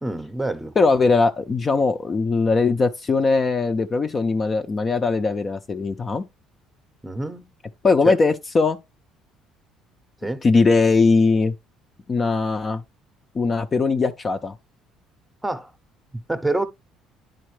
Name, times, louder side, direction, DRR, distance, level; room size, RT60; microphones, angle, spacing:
voice 1, 0.0-0.7 7.0-7.4 8.0-8.1 10.2-10.4 15.4-15.7 16.3-16.6, right 2 dB, 5° right, 0.7 m, -26 dB
voice 2, 0.8-6.2 7.8-8.8 10.4-11.5 12.1-12.8 13.3-14.5, left 4 dB, 25° left, 0.5 m, -20 dB
10.0 x 4.2 x 3.2 m
cardioid pair, 125°, 0 cm